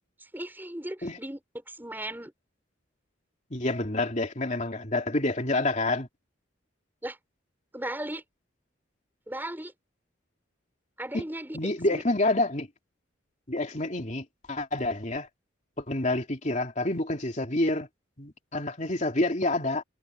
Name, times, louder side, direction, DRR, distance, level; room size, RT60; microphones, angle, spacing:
voice 1, 0.3-2.3 7.0-7.2 7.7-8.2 9.3-9.7 11.0-12.0, right 1 dB, 10° right, 6.2 m, -37 dB
voice 2, 3.5-6.1 11.1-11.3 11.5-12.7 13.5-15.3 15.8-17.9 18.2-19.8, left 2 dB, 40° left, 2.9 m, -28 dB
head